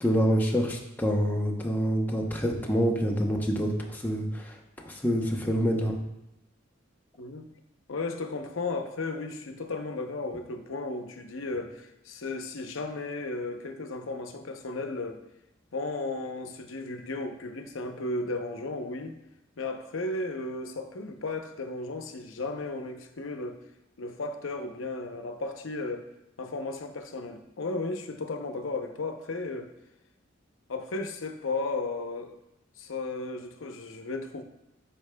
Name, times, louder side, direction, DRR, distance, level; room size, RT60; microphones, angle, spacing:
voice 1, 0.0-4.4 4.9-5.9, equal, 10° left, 0 dB, 0.8 m, -26 dB
voice 2, 7.2-7.5 7.9-15.2 15.7-19.2 19.6-23.6 24.0-26.1 26.4-29.7 30.7-32.4 32.8-34.4, left 3 dB, 80° left, 6 dB, 0.7 m, -34 dB
8.3 x 5.8 x 2.2 m, 0.89 s
head